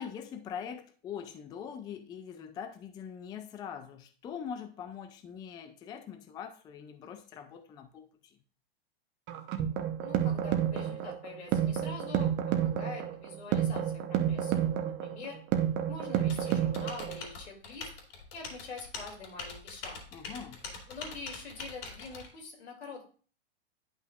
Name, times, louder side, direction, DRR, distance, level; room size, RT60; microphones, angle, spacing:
voice 1, 0.0-8.4 20.1-20.6, left 7 dB, 15° left, 0.4 m, -43 dB
sound 1, 9.3-17.3, right 10 dB, 35° right, 0.9 m, -30 dB
voice 2, 10.0-14.5 14.8-15.4 15.9-17.9 18.3-20.0 20.9-23.1, left 4 dB, 85° left, 2.6 m, -45 dB
Typing, 16.3-22.3, left 4 dB, 65° left, 2.7 m, -43 dB
10.5 x 5.6 x 2.4 m
hypercardioid pair, 125°, 32 cm